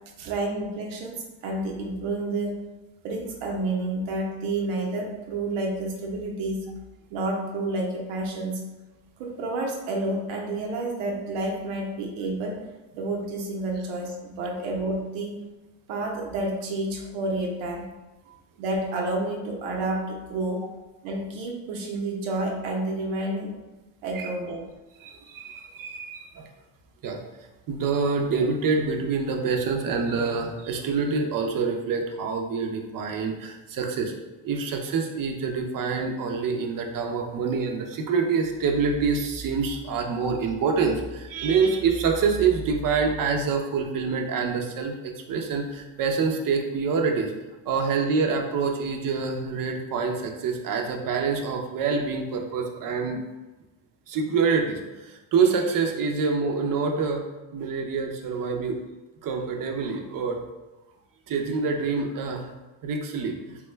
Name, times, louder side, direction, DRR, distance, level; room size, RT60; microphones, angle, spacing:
voice 1, 0.2-2.6 3.0-6.7 7.1-8.6 9.2-12.6 13.0-15.4 15.9-17.9 18.6-20.7 21.0-23.6 24.0-24.7, right 2 dB, 90° right, 0 dB, 0.9 m, -29 dB
voice 2, 25.0-26.5 27.0-27.2 27.7-34.1 34.4-47.3 47.7-53.2 54.1-57.2 57.5-58.8 59.2-60.4 61.3-62.5 62.8-63.6, right 5 dB, 45° right, 3 dB, 0.6 m, -26 dB
3.5 x 2.3 x 3.1 m, 1.1 s
cardioid pair, 115°, 48 cm